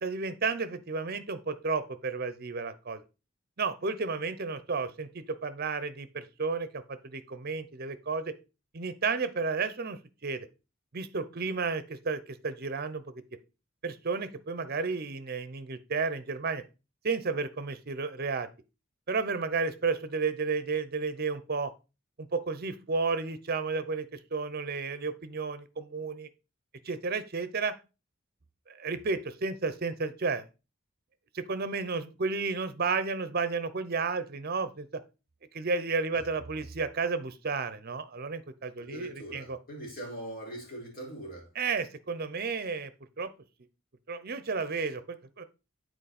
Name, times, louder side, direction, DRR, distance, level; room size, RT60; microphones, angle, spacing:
voice 1, 0.0-3.0 3.6-8.3 8.7-10.5 10.9-13.2 13.8-16.6 17.0-18.5 19.1-21.7 22.2-26.3 26.8-27.7 28.7-30.4 31.3-35.0 35.5-39.6 41.6-42.9 43.2-43.3 44.1-45.4, right 4 dB, 50° right, 0.7 m, -32 dB
voice 2, 38.8-41.5, right 1 dB, 50° left, 3.1 m, -41 dB
7.9 x 4.6 x 4.2 m
head